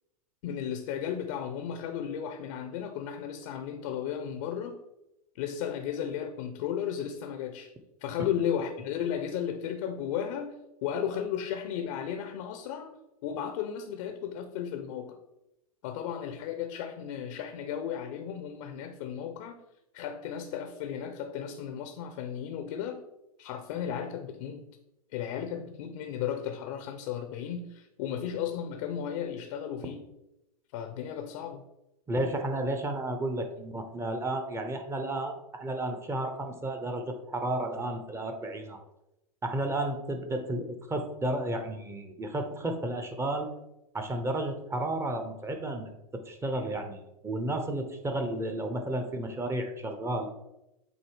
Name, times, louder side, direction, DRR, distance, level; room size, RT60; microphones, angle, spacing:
voice 1, 0.4-4.8 5.4-7.7 8.0-15.2 15.8-19.6 19.9-23.1 23.4-24.7 25.1-30.1 30.7-31.6, left 9 dB, 55° left, 8 dB, 0.7 m, -34 dB
voice 2, 32.1-38.8 39.4-43.5 43.9-50.3, right 1 dB, 15° right, 6 dB, 0.8 m, -32 dB
8.0 x 2.7 x 4.6 m, 0.91 s
hypercardioid pair, 105°, 20 cm